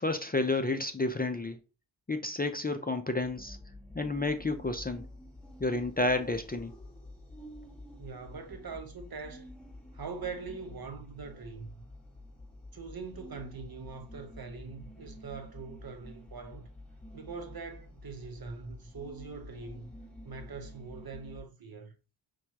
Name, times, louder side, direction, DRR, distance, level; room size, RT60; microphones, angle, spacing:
voice 1, 0.0-1.6 2.1-3.6 3.9-5.0 5.6-6.7, left 2 dB, 20° left, 0.4 m, -30 dB
sound 1, 3.2-21.4, left 1 dB, ahead, 1.7 m, -49 dB
voice 2, 8.0-9.5 9.9-11.8 12.7-16.7 17.1-19.9 20.2-21.9, right 4 dB, 50° right, 0.8 m, -42 dB
6.0 x 2.3 x 2.8 m
wide cardioid pair, 65°, 47 cm